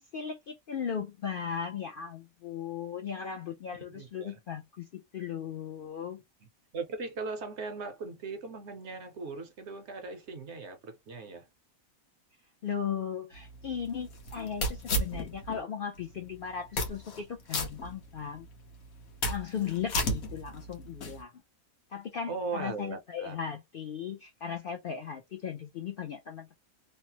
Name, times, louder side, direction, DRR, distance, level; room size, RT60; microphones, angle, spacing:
voice 1, 0.0-6.2 12.6-18.5 19.3-21.3 21.9-26.5, left 7 dB, 60° left, 0.6 m, -37 dB
voice 2, 3.9-4.4 6.7-11.5 22.3-23.4, right 4 dB, 60° right, 0.9 m, -39 dB
sound 1, 13.3-15.6 16.0-16.1 16.6-17.2 17.5-18.4 18.8-21.2, left 1 dB, 85° left, 1.3 m, -33 dB
3.2 x 2.0 x 2.8 m
omnidirectional pair, 1.4 m